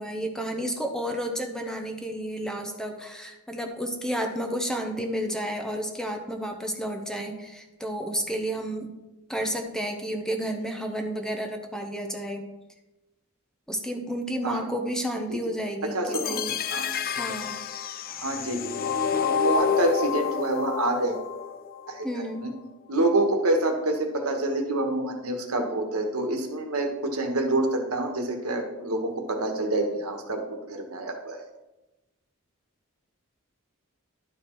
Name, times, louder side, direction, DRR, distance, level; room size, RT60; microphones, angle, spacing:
voice 1, 0.0-8.9 9.3-12.4 13.7-16.6 17.1-17.6 22.0-22.4, equal, 5° left, 4 dB, 0.8 m, -31 dB
voice 2, 15.8-16.4 16.7-16.9 18.1-18.7 19.2-21.2 21.9-22.5 22.9-31.4, right 2 dB, 75° right, 3 dB, 1.4 m, -27 dB
sound 1, 16.1-22.1, left 7 dB, 45° left, 0.4 m, -29 dB
11.5 x 4.8 x 4.5 m, 1.0 s
head